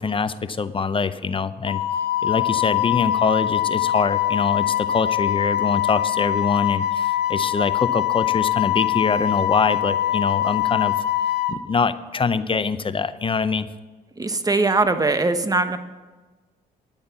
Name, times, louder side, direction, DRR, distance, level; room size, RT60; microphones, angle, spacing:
voice 1, 0.0-1.8 2.2-11.0 11.5-13.7, left 5 dB, 25° left, 14 dB, 0.6 m, -24 dB
Wind instrument woodwind instrument, 1.7-11.6, left 12 dB, 55° left, 0.9 m, -23 dB
voice 2, 14.2-15.8, right 3 dB, 20° right, 10 dB, 1.0 m, -21 dB
10.5 x 8.7 x 5.7 m, 1.3 s
supercardioid pair, 70°, 20 cm